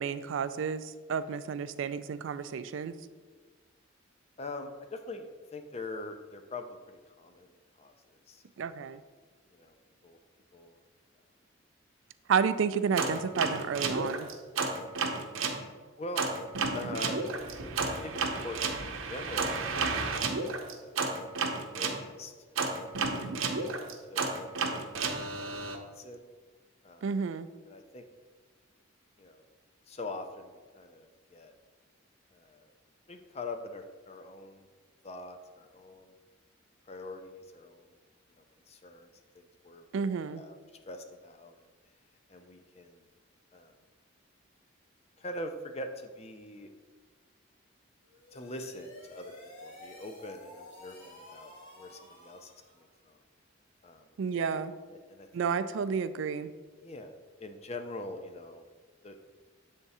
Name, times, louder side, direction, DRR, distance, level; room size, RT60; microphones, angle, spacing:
voice 1, 0.0-2.9 8.6-9.0 12.3-14.3 27.0-27.5 39.9-40.4 54.2-54.7 55.3-56.5, right 6 dB, 70° right, 13 dB, 0.3 m, -31 dB
voice 2, 4.4-7.5 7.8-8.7 9.5-9.8 10.0-10.2 10.5-10.8 16.0-16.2 16.7-17.2 17.8-21.0 21.6-22.6 23.4-24.4 24.7-24.9 25.3-26.3 26.8-27.1 27.6-28.0 29.2-29.4 29.9-31.5 32.3-32.7 33.1-34.7 35.0-36.1 36.9-37.9 38.4-41.7 42.3-43.1 43.5-43.8 45.2-46.7 48.3-49.3 49.6-53.2 53.8-54.1 54.9-55.5 56.8-58.6 59.0-59.2, left 2 dB, 30° left, 6 dB, 0.5 m, -44 dB
sound 1, 13.0-15.6 16.2-22.0 22.6-25.8, right 4 dB, 90° right, 0.7 m, -32 dB
sound 2, 48.0-52.9, left 1 dB, 90° left, 2.0 m, -51 dB
7.9 x 3.6 x 4.1 m, 1.4 s
head